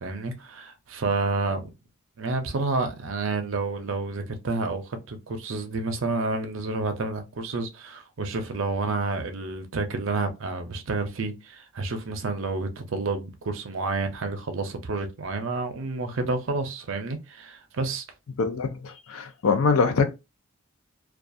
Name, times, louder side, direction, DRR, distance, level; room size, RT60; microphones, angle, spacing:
voice 1, 0.0-1.7 2.2-18.0, right 3 dB, 60° right, 0.5 m, -29 dB
voice 2, 18.4-20.1, left 5 dB, 75° left, 0.5 m, -23 dB
2.3 x 2.3 x 2.6 m
head